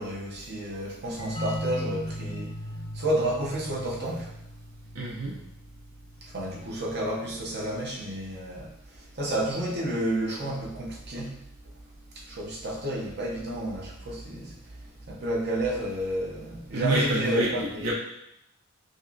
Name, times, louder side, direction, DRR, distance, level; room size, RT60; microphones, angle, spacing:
voice 1, 0.0-2.5 2.9-4.3 6.2-11.4 12.1-14.7 15.1-17.9, right 1 dB, 50° right, -3 dB, 0.8 m, -31 dB
sound 1, 1.2-6.6, left 1 dB, 30° left, 0.6 m, -38 dB
voice 2, 4.9-5.3 16.7-17.9, right 1 dB, 80° right, -5 dB, 0.7 m, -28 dB
5.2 x 2.1 x 2.7 m, 0.83 s
head